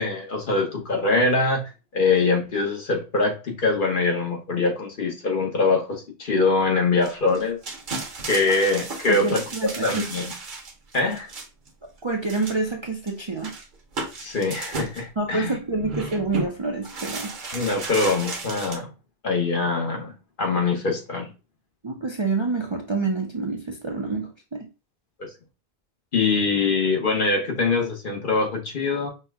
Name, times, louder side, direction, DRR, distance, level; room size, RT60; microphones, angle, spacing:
voice 1, 0.0-7.6 8.3-9.4 9.8-10.2 10.9-11.3 14.2-15.5 17.5-18.9 19.2-20.1 20.4-21.3 25.2-25.3 26.1-29.1, left 3 dB, 55° left, 1.1 m, -23 dB
sound 1, 7.0-11.7 12.2-12.7 13.1-13.2 13.4-15.0 15.7-16.5 16.8-18.8, right 3 dB, 55° right, 1.0 m, -34 dB
voice 2, 9.1-10.1 12.0-13.5 15.2-17.3 21.8-24.7, right 3 dB, 35° right, 0.5 m, -27 dB
5.5 x 2.2 x 3.5 m
omnidirectional pair, 1.0 m